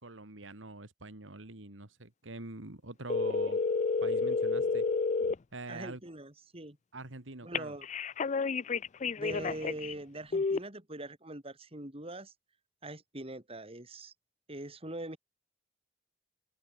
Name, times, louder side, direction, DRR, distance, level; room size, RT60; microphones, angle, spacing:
voice 1, 0.0-3.6 4.0-4.9 5.5-6.0 6.9-7.8, right 2 dB, 90° right, 2.5 m, -44 dB
sound 1, 3.1-5.4 7.5-9.9 10.3-10.6, left 4 dB, 40° left, 0.4 m, -30 dB
voice 2, 5.7-6.8 7.4-7.9 9.2-12.3 12.8-14.1 14.5-15.2, right 1 dB, 30° right, 4.2 m, -42 dB
head